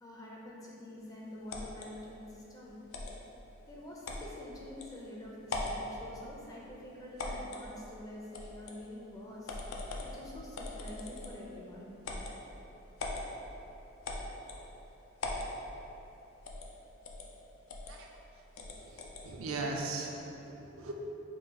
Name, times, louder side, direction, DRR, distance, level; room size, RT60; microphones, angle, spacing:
voice 1, 0.0-2.8 3.7-11.9 13.6-13.7, left 1 dB, 15° left, -4 dB, 0.4 m, -47 dB
sound 1, 1.5-1.9 2.9-3.2 4.0-4.3 4.8-4.9 5.4-5.8 7.2-7.7 8.3-8.8 9.5-10.1 10.5-11.4 12.0-12.3 13.0-13.3 14.0-14.6 15.2-15.5 16.5-16.7 17.0-17.3 17.7-17.9 18.6-19.2, left 2 dB, 90° left, 0.4 m, -39 dB
voice 2, 18.7-20.9, right 3 dB, 90° right, 0 dB, 0.5 m, -39 dB
3.7 x 2.3 x 3.9 m, 3.0 s
head